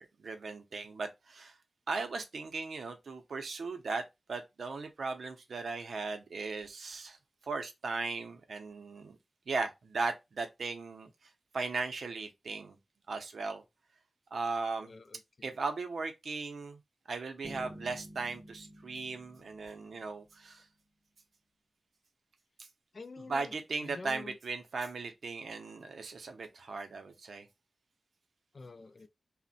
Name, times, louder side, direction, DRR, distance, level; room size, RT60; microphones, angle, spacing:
voice 1, 0.0-1.5 1.9-7.2 7.4-9.2 9.5-11.1 11.5-12.8 13.1-13.6 14.3-14.9 15.4-16.8 17.1-20.6 22.6-22.7 23.3-27.5, right 4 dB, 65° right, 0.6 m, -37 dB
voice 2, 14.8-15.5 22.9-23.5 23.8-24.4 28.5-29.1, left 3 dB, 40° left, 0.3 m, -48 dB
sound 1, 17.4-20.5, equal, 20° right, 0.6 m, -50 dB
2.5 x 2.1 x 3.9 m
wide cardioid pair, 170°, 0 cm